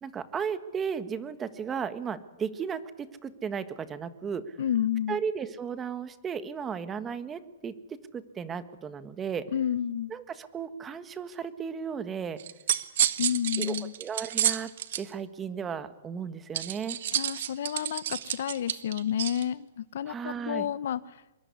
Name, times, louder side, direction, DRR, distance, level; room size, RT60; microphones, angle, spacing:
voice 1, 0.0-4.6 5.1-9.5 10.1-12.4 13.6-14.7 15.0-17.0 20.1-20.7, right 6 dB, 15° right, 12 dB, 1.6 m, -35 dB
voice 2, 4.6-5.2 9.5-10.1 13.2-13.9 17.1-21.0, left 10 dB, 65° left, 17 dB, 1.2 m, -30 dB
sound 1, 12.4-15.0 16.5-19.4, right 11 dB, 60° right, 1.6 m, -29 dB
25.0 x 22.5 x 9.6 m, 0.94 s
hypercardioid pair, 155°, 0 cm